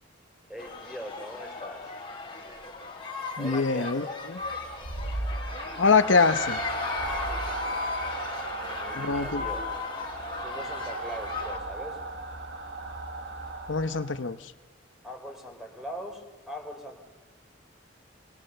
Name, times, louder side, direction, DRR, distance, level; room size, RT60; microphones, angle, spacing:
voice 1, 0.5-1.9 3.4-4.1 8.7-9.7 10.3-12.0 15.0-17.0, equal, ahead, 3 dB, 3.4 m, -41 dB
sound 1, 0.6-11.6, left 4 dB, 25° left, 2.9 m, -36 dB
voice 2, 3.4-4.4 5.8-6.6 8.9-9.4 13.7-14.4, left 4 dB, 75° left, 12 dB, 0.8 m, -24 dB
sound 2, 4.4-14.4, right 2 dB, 60° right, 1.4 m, -36 dB
25.0 x 22.0 x 6.7 m, 1.2 s
head